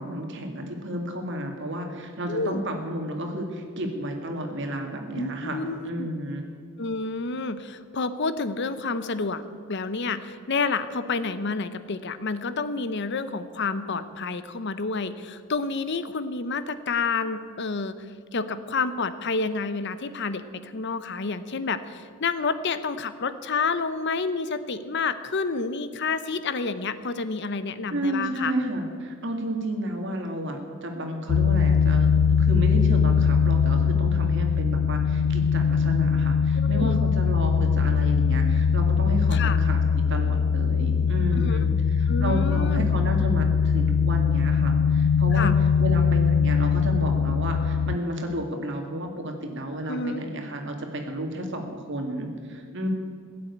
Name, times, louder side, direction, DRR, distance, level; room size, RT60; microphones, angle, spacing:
voice 1, 0.0-6.5 27.9-41.7 42.0-45.5 45.8-52.9, right 1 dB, 55° right, 3 dB, 2.2 m, -32 dB
voice 2, 2.3-2.6 5.1-6.1 6.8-9.4 9.7-18.1 18.3-28.5 36.6-37.0 39.3-39.6 41.4-41.7 42.1-42.8 45.3-45.6 49.9-50.2, left 4 dB, 55° left, 13 dB, 0.7 m, -29 dB
sound 1, 31.3-48.0, left 6 dB, 70° left, 0.3 m, -21 dB
16.5 x 7.7 x 9.7 m, 2.1 s
head